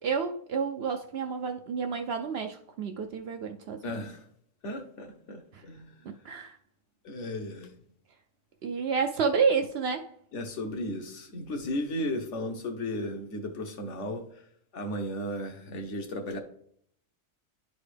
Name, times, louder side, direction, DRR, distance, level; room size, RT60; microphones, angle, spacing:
voice 1, 0.0-3.9 5.5-5.6 6.1-6.6 8.6-10.1, right 5 dB, 65° right, 0.7 m, -30 dB
voice 2, 3.8-4.3 4.6-5.8 7.0-7.7 10.3-14.4 14.7-16.4, left 1 dB, 65° left, 1.2 m, -35 dB
10.5 x 4.0 x 3.3 m
omnidirectional pair, 1.4 m